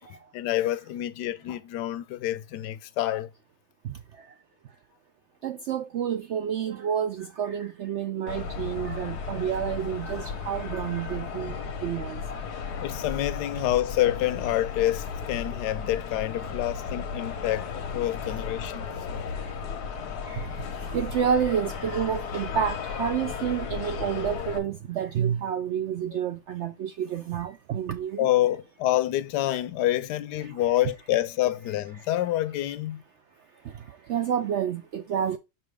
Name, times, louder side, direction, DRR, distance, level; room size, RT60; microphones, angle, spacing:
voice 1, 0.3-3.3 12.8-18.9 28.2-33.0, left 14 dB, 90° left, 1.2 m, -27 dB
voice 2, 5.4-11.6 11.8-12.4 20.3-28.3 30.4-30.5 34.1-35.4, right 8 dB, 75° right, 0.6 m, -29 dB
sound 1, 8.3-24.6, left 6 dB, 75° left, 1.5 m, -35 dB
5.7 x 5.6 x 3.4 m
omnidirectional pair, 1.7 m